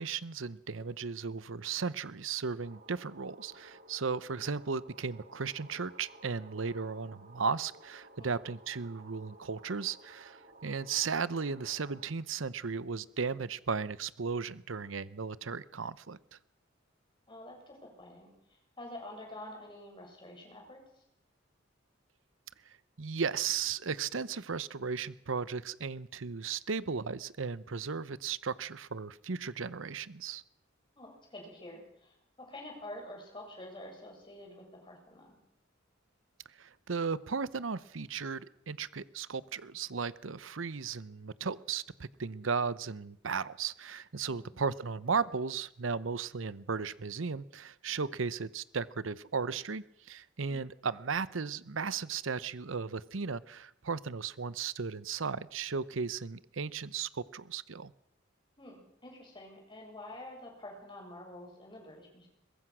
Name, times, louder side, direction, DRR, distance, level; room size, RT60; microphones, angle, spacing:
voice 1, 0.0-16.2 22.7-30.4 36.6-57.9, right 5 dB, 85° right, 17 dB, 0.8 m, -36 dB
sound 1, 2.6-12.1, right 2 dB, 50° right, 2.5 m, -56 dB
voice 2, 17.3-18.3 18.8-20.8 31.0-35.4 44.3-44.5 50.5-50.6 58.6-62.3, left 1 dB, 25° left, 1 dB, 7.6 m, -48 dB
23.0 x 21.5 x 6.2 m, 0.73 s
head